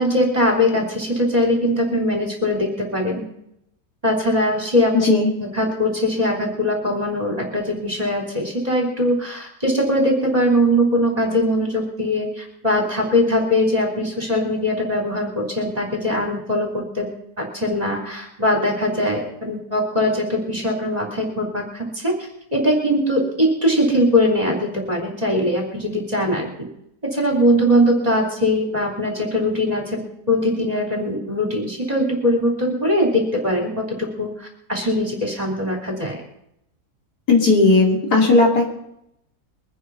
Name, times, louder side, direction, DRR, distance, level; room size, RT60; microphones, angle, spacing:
voice 1, 0.0-3.3 4.0-4.9 5.4-17.1 17.4-26.5 27.0-36.2, left 1 dB, 25° right, 1 dB, 3.5 m, -21 dB
voice 2, 37.3-38.6, left 3 dB, 70° left, 0 dB, 3.6 m, -15 dB
22.5 x 9.4 x 5.5 m, 0.77 s
omnidirectional pair, 1.7 m